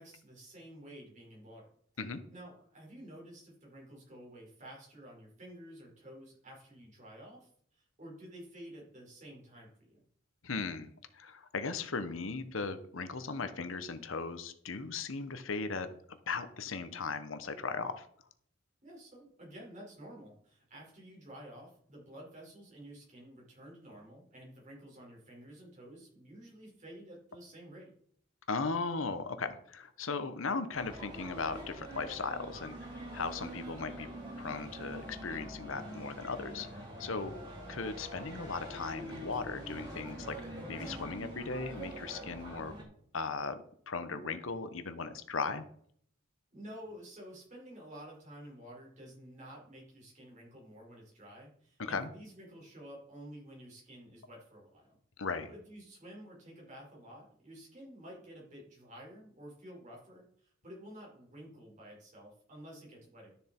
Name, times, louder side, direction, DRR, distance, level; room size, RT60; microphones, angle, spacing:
voice 1, 0.0-1.7 2.3-10.0 18.8-27.9 46.5-55.0 55.5-63.3, equal, 35° right, -3 dB, 5.1 m, -51 dB
voice 2, 10.4-18.1 28.5-32.7 33.1-34.1 34.4-36.7 37.0-37.4 37.7-40.4 40.7-42.7 43.1-45.6 51.8-52.1 55.2-55.5, left 4 dB, 75° left, 11 dB, 1.0 m, -37 dB
sound 1, 30.7-42.8, right 1 dB, 20° right, 3.7 m, -45 dB
12.5 x 7.0 x 4.4 m, 0.63 s
head